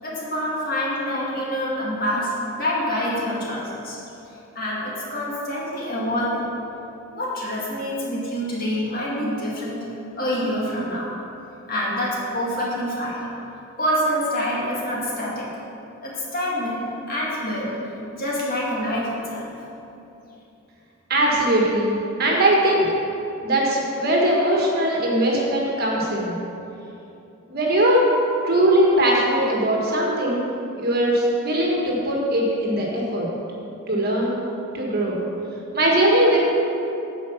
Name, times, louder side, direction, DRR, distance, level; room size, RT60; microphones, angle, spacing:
voice 1, 0.0-4.0 4.6-6.5 7.1-9.8 10.2-11.1 11.7-13.2 13.8-15.5 16.0-16.8 17.1-17.7 18.1-19.5, equal, 40° left, -6 dB, 2.1 m, -26 dB
voice 2, 21.1-22.9 23.4-26.3 27.5-28.0 28.4-30.4 30.8-33.3 33.9-34.3 34.7-35.2 35.7-36.4, right 1 dB, 45° right, -3 dB, 1.5 m, -20 dB
9.5 x 5.2 x 7.1 m, 2.9 s
head